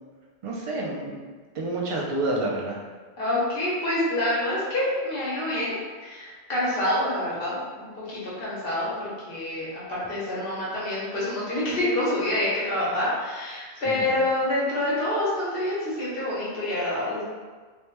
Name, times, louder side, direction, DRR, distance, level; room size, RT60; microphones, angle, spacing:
voice 1, 0.4-1.2 1.5-2.8 13.8-14.2, right 2 dB, 55° right, -2 dB, 0.3 m, -29 dB
voice 2, 3.2-17.2, left 1 dB, 65° left, -7 dB, 1.1 m, -27 dB
3.1 x 2.1 x 2.9 m, 1.5 s
omnidirectional pair, 1.1 m